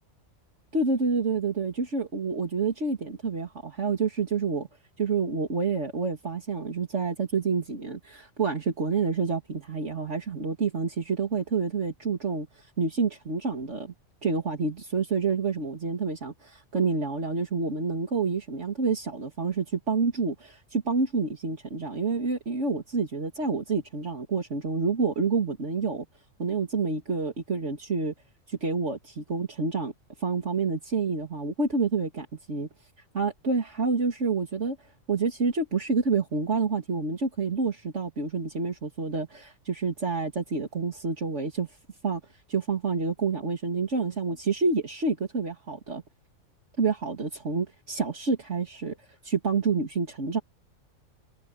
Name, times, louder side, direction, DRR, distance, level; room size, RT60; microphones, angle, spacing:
voice 1, 0.7-4.7 5.0-13.9 14.2-26.1 26.4-28.1 28.5-29.9 30.2-32.7 33.1-34.8 35.1-41.7 42.0-42.2 42.5-46.0 46.8-49.0 49.2-50.4, right 4 dB, 60° right, 2.6 m, -28 dB
omnidirectional pair, 1.4 m